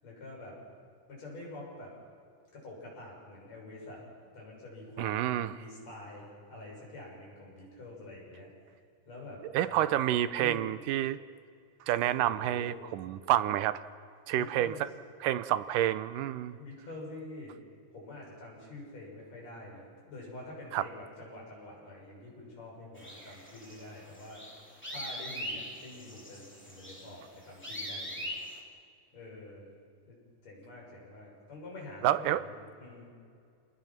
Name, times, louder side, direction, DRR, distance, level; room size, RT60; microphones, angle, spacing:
voice 1, 0.0-0.6 1.1-1.9 2.5-4.0 4.3-8.5 9.1-9.9 10.3-10.8 12.2-12.7 14.3-14.8 16.6-17.5 17.9-24.5 24.9-28.3 29.1-29.7 30.1-30.2 30.4-33.1, left 2 dB, 55° left, -3 dB, 8.0 m, -47 dB
voice 2, 5.0-5.5 9.5-11.2 11.9-13.8 14.3-14.9 15.2-16.6 20.7-20.8 32.0-32.4, right 13 dB, 85° right, 14 dB, 2.3 m, -29 dB
sound 1, 23.0-28.6, equal, 5° left, 2.7 m, -42 dB
28.0 x 20.0 x 5.9 m, 2.3 s
omnidirectional pair, 3.7 m